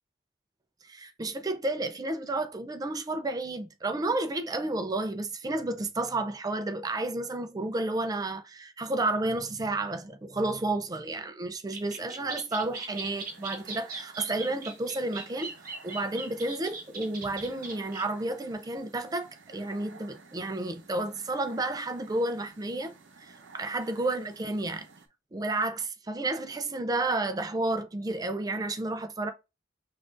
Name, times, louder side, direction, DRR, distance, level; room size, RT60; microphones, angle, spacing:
voice 1, 0.8-15.5 15.8-22.9 23.2-24.9 25.3-29.3, right 2 dB, 20° right, 0.4 m, -31 dB
sound 1, 11.7-18.0, right 3 dB, 50° right, 1.1 m, -40 dB
sound 2, 12.9-25.1, right 4 dB, 85° right, 0.7 m, -54 dB
5.7 x 2.5 x 2.5 m
head